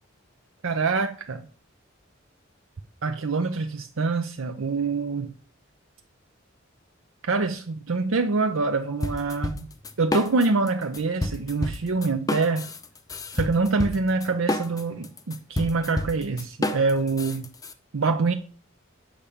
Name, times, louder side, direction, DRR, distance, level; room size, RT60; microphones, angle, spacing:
voice 1, 0.6-1.4 3.0-5.3 7.3-9.7 10.0-12.7 13.3-17.4 17.9-18.3, right 3 dB, 75° right, 0.6 m, -25 dB
sound 1, 9.0-10.7 10.9-17.7, left 1 dB, 20° left, 0.6 m, -29 dB
8.7 x 5.6 x 5.1 m
head